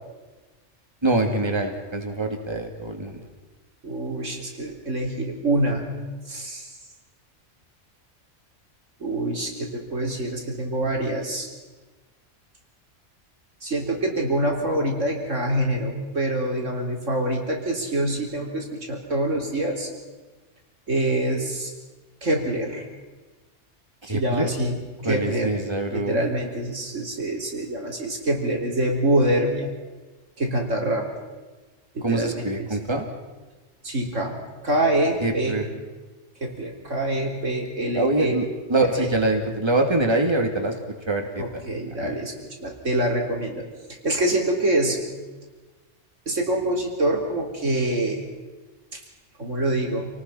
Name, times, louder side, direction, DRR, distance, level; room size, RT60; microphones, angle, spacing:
voice 1, 1.0-3.2 24.0-24.5 25.0-26.2 32.0-33.1 35.2-35.6 37.9-40.7 41.1-41.6 42.0-42.1, right 2 dB, 20° right, 2 dB, 2.7 m, -24 dB
voice 2, 3.8-5.9 6.3-6.7 9.0-11.5 13.6-19.9 20.9-21.7 22.2-22.9 24.1-24.8 25.0-25.5 25.9-29.7 30.4-31.1 31.9-32.4 33.8-35.6 36.4-38.4 39.0-39.1 41.4-42.3 42.6-43.6 44.0-45.0 46.3-48.2 48.9-49.0 49.4-50.1, right 1 dB, 90° right, 1 dB, 4.0 m, -25 dB
28.0 x 19.0 x 5.8 m, 1.2 s
omnidirectional pair, 1.3 m